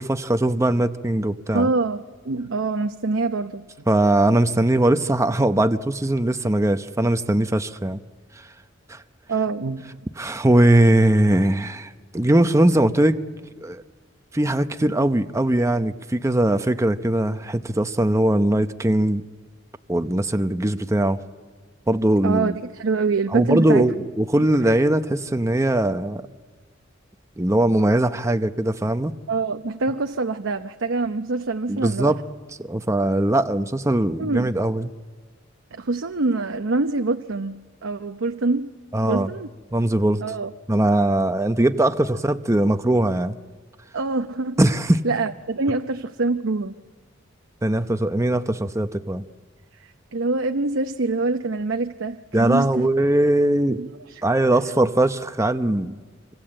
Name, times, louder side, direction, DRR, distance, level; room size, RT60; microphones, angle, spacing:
voice 1, 0.0-1.7 3.9-8.0 8.9-9.0 10.2-13.2 13.6-13.8 14.3-19.2 19.9-21.2 21.9-22.6 23.3-26.2 27.4-29.1 31.7-32.2 32.6-34.9 38.9-39.3 39.7-40.2 40.7-43.4 44.6-45.0 47.6-49.2 52.3-53.8 54.2-55.9, right 1 dB, 15° right, 9 dB, 0.7 m, -20 dB
voice 2, 1.5-3.7 9.3-10.0 22.2-23.9 29.3-32.1 34.2-34.5 35.7-38.8 39.1-39.5 40.2-40.5 43.9-44.6 45.0-46.8 49.8-52.9 53.8-54.2, right 3 dB, 85° right, 6 dB, 0.8 m, -25 dB
26.5 x 25.5 x 7.7 m, 1.5 s
head